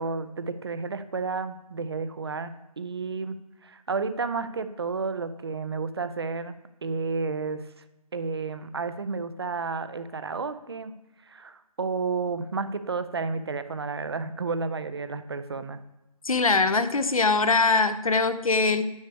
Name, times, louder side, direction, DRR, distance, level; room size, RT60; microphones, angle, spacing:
voice 1, 0.0-3.4 3.6-6.6 6.8-7.8 8.1-10.9 11.2-15.8, right 4 dB, 40° right, 12 dB, 0.5 m, -31 dB
voice 2, 16.2-18.8, left 3 dB, 60° left, 12 dB, 0.7 m, -22 dB
9.5 x 8.3 x 3.3 m, 1.0 s
figure-of-eight pair, 150°, 20 cm